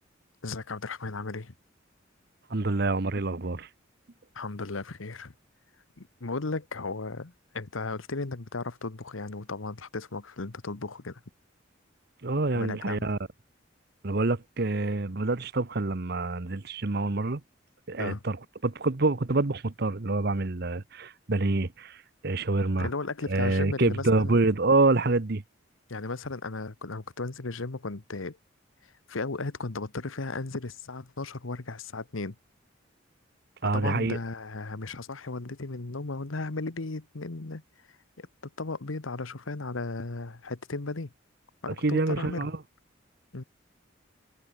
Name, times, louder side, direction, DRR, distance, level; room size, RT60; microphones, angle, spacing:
voice 1, 0.4-1.5 4.3-5.3 6.0-11.2 12.5-13.1 18.0-18.2 22.8-24.3 25.9-28.4 29.1-32.4 33.7-37.6 38.2-38.3 38.6-41.1 41.6-42.5 43.3-43.4, left 3 dB, 85° left, 1.2 m, -35 dB
voice 2, 2.5-3.7 12.2-13.2 14.0-17.4 17.9-18.4 18.6-22.9 23.3-25.4 33.6-34.2 41.7-42.5, right 3 dB, 55° right, 1.0 m, -26 dB
head